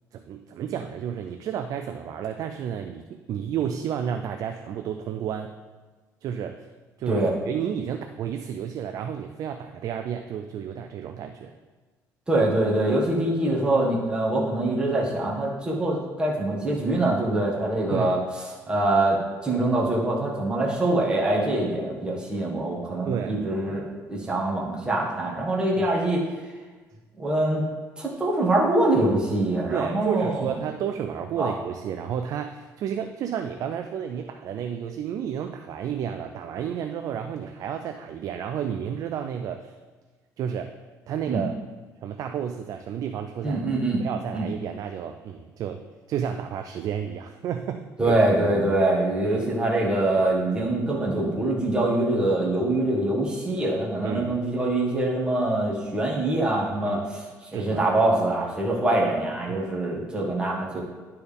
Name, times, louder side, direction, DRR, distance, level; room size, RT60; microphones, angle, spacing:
voice 1, 0.1-5.5 6.2-6.6 7.0-11.5 13.0-13.1 17.9-18.1 23.0-23.4 25.8-25.9 29.7-39.8 40.4-40.7 41.1-41.6 42.0-43.7 44.0-45.8 46.1-48.1 49.3-49.5 54.0-54.4 56.8-57.0 57.5-57.8 59.5-59.6, right 8 dB, 60° right, 6 dB, 0.4 m, -31 dB
voice 2, 12.3-18.2 18.7-26.2 27.2-27.6 28.0-30.5 31.4-31.5 41.3-41.4 43.4-44.0 44.3-44.5 48.0-60.8, right 2 dB, 15° right, -5 dB, 1.8 m, -24 dB
11.0 x 4.6 x 3.5 m, 1.3 s
cardioid pair, 105°, 7 cm